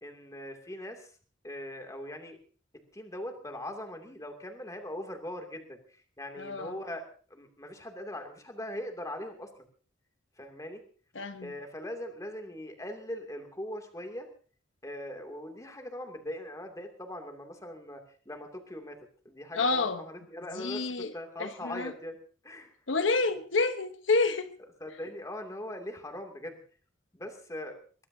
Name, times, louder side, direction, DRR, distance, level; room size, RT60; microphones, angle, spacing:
voice 1, 0.0-1.1 1.4-2.4 2.9-9.5 10.4-10.8 11.4-14.3 14.8-22.2 22.4-22.7 24.8-26.6 27.1-27.8, left 1 dB, 20° left, 2.7 m, -41 dB
voice 2, 6.4-6.8 11.1-11.5 19.5-20.0 20.5-21.1 21.4-21.9 22.9-24.5, left 3 dB, 85° left, 1.1 m, -29 dB
23.0 x 19.5 x 2.8 m
head